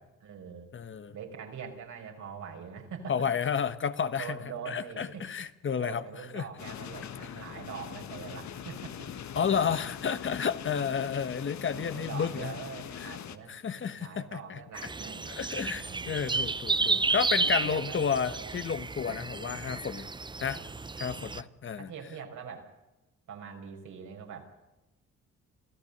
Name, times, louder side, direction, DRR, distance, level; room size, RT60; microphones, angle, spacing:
voice 1, 0.2-0.7 1.1-3.3 4.2-5.3 5.7-9.1 11.4-15.2 15.6-16.2 17.4-18.6 19.1-19.2 20.5-20.7 21.1-21.5 21.8-22.7 23.3-24.5, right 6 dB, 75° right, 2 dB, 5.3 m, -43 dB
voice 2, 0.7-1.1 3.1-4.4 4.7-6.0 6.3-6.4 9.3-12.5 13.0-13.2 13.5-14.6 15.4-20.1 20.4-20.6 21.0-21.9, left 7 dB, 40° left, 12 dB, 1.2 m, -31 dB
sound 1, 6.6-13.4, left 9 dB, 65° left, 1.5 m, -42 dB
sound 2, 14.7-21.4, right 3 dB, 15° right, 0.7 m, -32 dB
27.0 x 15.0 x 6.8 m, 0.99 s
cardioid pair, 90°, 30 cm